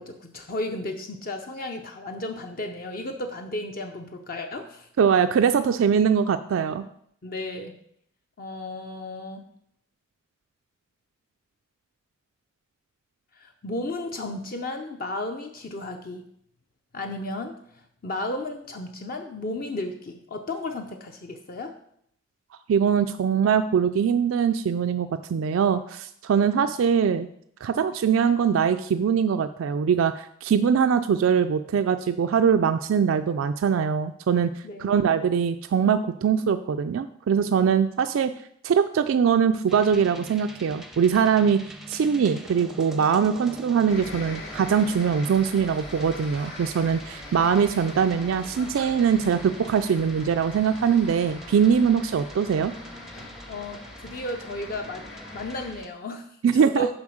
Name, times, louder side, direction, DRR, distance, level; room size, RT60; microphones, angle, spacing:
voice 1, 0.0-4.9 7.2-7.8 8.4-9.4 13.3-16.2 16.9-21.7 26.5-26.7 34.6-35.1 53.5-55.0 55.3-56.9, left 1 dB, 45° left, 4 dB, 0.6 m, -34 dB
voice 2, 5.0-6.8 22.7-27.3 27.6-34.5 34.8-38.3 38.6-41.6 41.9-52.7 56.4-56.9, right 7 dB, 75° right, 9 dB, 0.3 m, -22 dB
sound 1, 39.7-55.9, right 1 dB, ahead, 0.5 m, -45 dB
sound 2, 43.9-55.7, left 2 dB, 60° left, 2.1 m, -42 dB
7.2 x 5.0 x 6.3 m, 0.70 s
head